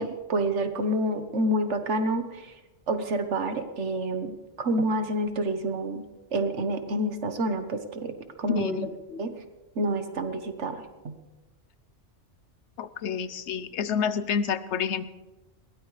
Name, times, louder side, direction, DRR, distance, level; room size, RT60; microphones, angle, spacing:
voice 1, 0.0-2.5 2.9-6.0 6.3-8.1 8.4-8.8 9.2-9.3 9.8-11.1, right 1 dB, 75° right, 8 dB, 1.5 m, -28 dB
voice 2, 8.5-9.2 12.8-15.0, left 7 dB, 75° left, 14 dB, 1.0 m, -29 dB
21.5 x 17.0 x 3.3 m, 1.1 s
omnidirectional pair, 1.2 m